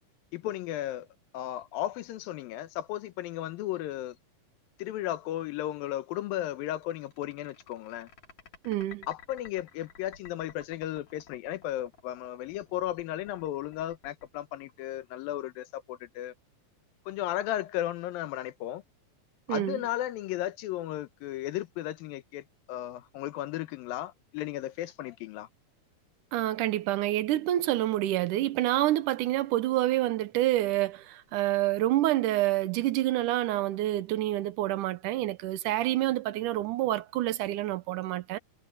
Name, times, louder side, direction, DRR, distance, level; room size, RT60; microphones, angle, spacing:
voice 1, 0.3-1.1 1.3-4.2 4.8-8.1 9.1-16.3 17.1-18.8 19.5-25.5, left 13 dB, 85° left, 2.7 m, -35 dB
sound 1, 6.7-15.3, left 6 dB, 55° left, 5.3 m, -53 dB
voice 2, 8.6-9.1 19.5-19.8 26.3-38.4, right 15 dB, 75° right, 2.2 m, -28 dB
omnidirectional pair, 4.0 m